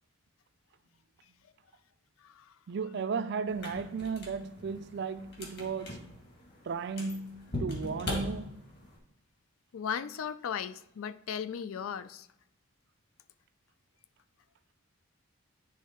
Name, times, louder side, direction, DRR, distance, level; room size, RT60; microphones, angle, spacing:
voice 1, 2.7-6.0 6.7-8.5, right 5 dB, 50° right, 0.4 m, -35 dB
sound 1, 3.5-9.0, left 1 dB, 50° left, 1.9 m, -41 dB
voice 2, 9.7-12.3, left 7 dB, 75° left, 0.4 m, -37 dB
10.0 x 3.6 x 4.3 m
head